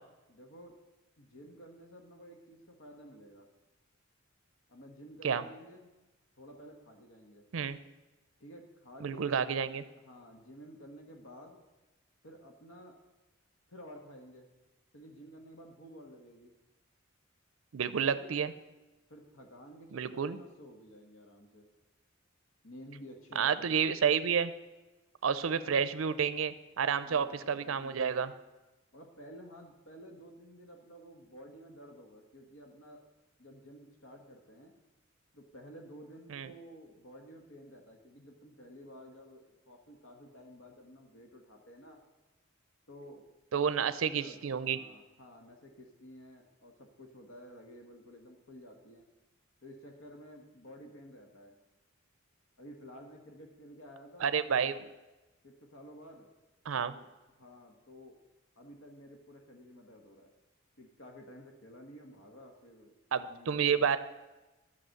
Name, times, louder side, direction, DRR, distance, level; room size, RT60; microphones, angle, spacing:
voice 1, 0.3-0.8 1.2-3.5 4.7-5.8 6.4-7.5 8.4-9.3 9.7-11.6 12.2-13.0 13.7-14.5 14.9-16.5 18.0-18.4 19.1-21.7 22.6-23.8 25.4-25.8 27.0-28.3 28.9-33.0 33.4-34.8 35.3-42.0 42.9-49.0 49.6-51.6 52.6-54.4 55.4-56.3 56.9-58.1 58.5-60.3 60.8-62.9 63.2-63.9, equal, 80° left, 3 dB, 1.4 m, -52 dB
voice 2, 9.0-9.8 17.7-18.5 19.9-20.4 23.4-24.5 25.2-28.3 36.3-36.5 43.5-44.8 54.2-54.9 56.7-56.9 63.1-64.0, right 7 dB, 75° right, 14 dB, 0.5 m, -30 dB
11.0 x 6.0 x 7.6 m, 1.1 s
head